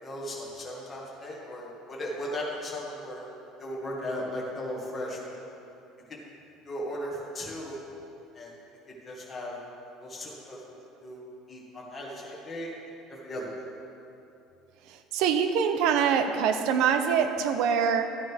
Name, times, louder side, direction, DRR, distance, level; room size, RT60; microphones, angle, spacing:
voice 1, 0.0-3.3 3.6-5.4 6.6-7.8 8.3-8.5 9.0-9.6 10.0-10.6 11.0-12.7 13.1-13.6, equal, 20° left, -4 dB, 2.0 m, -36 dB
voice 2, 14.9-18.0, right 7 dB, 65° right, 8 dB, 0.7 m, -24 dB
13.5 x 9.5 x 3.5 m, 2.8 s
cardioid pair, 160°, 0 cm